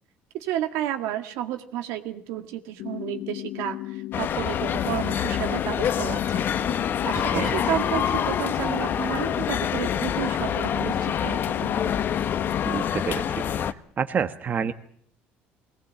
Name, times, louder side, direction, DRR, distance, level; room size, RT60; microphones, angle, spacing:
voice 1, 0.3-6.5 7.0-11.6, right 12 dB, 85° right, 7 dB, 1.9 m, -31 dB
sound 1, 2.8-12.8, left 17 dB, 75° left, 0.9 m, -35 dB
sound 2, 4.1-13.7, left 8 dB, 50° left, 1.0 m, -26 dB
voice 2, 11.6-11.9 12.6-14.7, right 7 dB, 40° right, 9 dB, 1.3 m, -29 dB
21.0 x 18.5 x 8.7 m, 0.62 s
cardioid pair, 105°, 5 cm